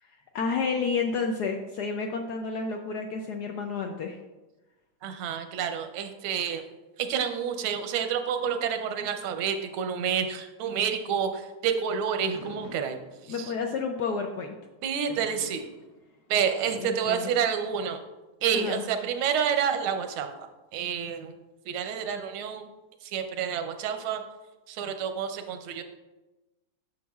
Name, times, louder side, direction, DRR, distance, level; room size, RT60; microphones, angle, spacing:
voice 1, 0.3-4.2 13.3-14.5 16.7-17.3 18.5-18.8, left 5 dB, 75° left, 3 dB, 0.9 m, -30 dB
voice 2, 5.0-6.6 7.0-13.0 13.2-13.5 14.8-15.6 16.3-18.0 18.4-20.5 20.7-21.3 21.6-22.6 23.0-24.2 24.7-25.8, right 7 dB, 90° right, 7 dB, 1.5 m, -29 dB
Fireworks, 12.3-13.6 15.1-16.6, left 2 dB, 50° left, 1.0 m, -48 dB
9.2 x 6.5 x 2.3 m, 1.1 s
omnidirectional pair, 2.2 m